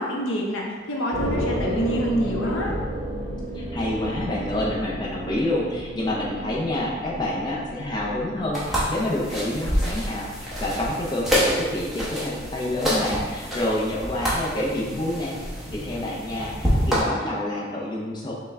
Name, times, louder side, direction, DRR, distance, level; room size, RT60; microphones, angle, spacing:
voice 1, 0.0-2.7, equal, 80° left, -1 dB, 0.7 m, -26 dB
sound 1, 1.1-15.9, equal, 45° right, 0.9 m, -34 dB
voice 2, 3.5-15.3 15.7-18.3, left 1 dB, 20° left, -4 dB, 0.5 m, -28 dB
sound 2, 8.5-17.0, equal, ahead, 0.9 m, -27 dB
5.4 x 2.2 x 3.5 m, 1.4 s
head